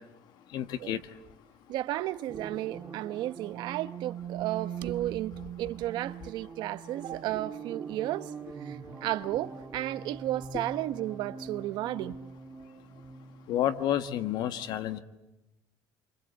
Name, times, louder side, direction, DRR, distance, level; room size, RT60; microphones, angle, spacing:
voice 1, 0.5-1.0 13.5-15.0, left 11 dB, 55° left, 1.6 m, -30 dB
voice 2, 1.7-8.3 8.6-12.2, right 15 dB, 60° right, 1.0 m, -33 dB
sound 1, 2.3-14.3, right 7 dB, 25° right, 1.6 m, -42 dB
28.0 x 25.5 x 8.3 m
cardioid pair, 145°, 9 cm